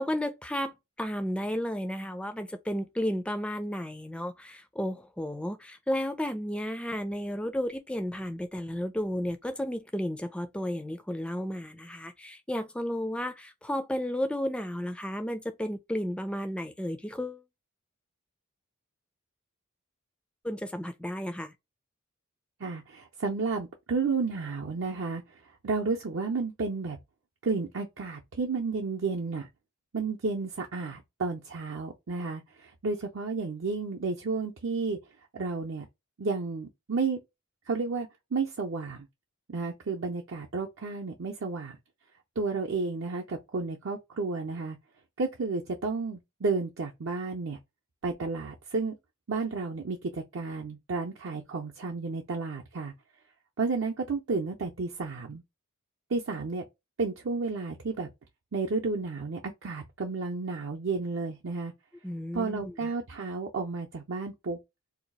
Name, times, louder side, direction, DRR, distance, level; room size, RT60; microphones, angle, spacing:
voice 1, 0.0-17.4 20.4-21.5 62.0-62.9, equal, 5° left, 0.3 m, -33 dB
voice 2, 22.6-25.2 25.6-27.0 27.4-29.5 29.9-35.0 35.3-35.8 36.2-37.2 37.7-39.1 39.5-41.8 42.4-44.8 45.2-47.6 48.0-49.0 49.3-52.9 53.6-55.4 56.1-56.6 57.0-58.1 58.5-61.7 62.3-64.6, right 4 dB, 65° right, 0.6 m, -32 dB
2.8 x 2.3 x 4.0 m
head